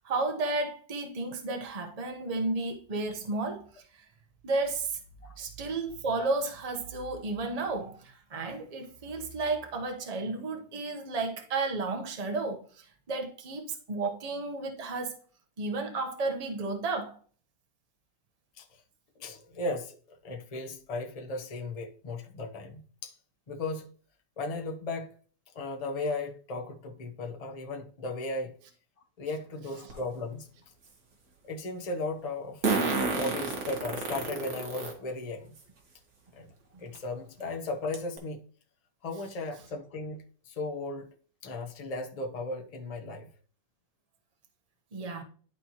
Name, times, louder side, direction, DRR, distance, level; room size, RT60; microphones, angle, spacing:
voice 1, 0.0-3.8 4.4-5.0 5.4-15.2 15.6-17.2 44.9-45.2, right 3 dB, 25° right, 0.8 m, -32 dB
voice 2, 19.2-19.9 20.2-23.2 23.5-23.9 24.4-25.1 25.5-28.5 29.2-30.5 31.5-35.6 36.4-36.5 36.8-38.5 39.0-41.1 41.4-43.3, left 2 dB, 30° left, 0.7 m, -36 dB
Fart, 29.9-30.0 32.6-34.9 35.6-35.7 36.9-37.0 37.4-37.5 37.9-38.2, right 4 dB, 50° right, 1.8 m, -29 dB
11.5 x 4.3 x 3.0 m
omnidirectional pair, 2.0 m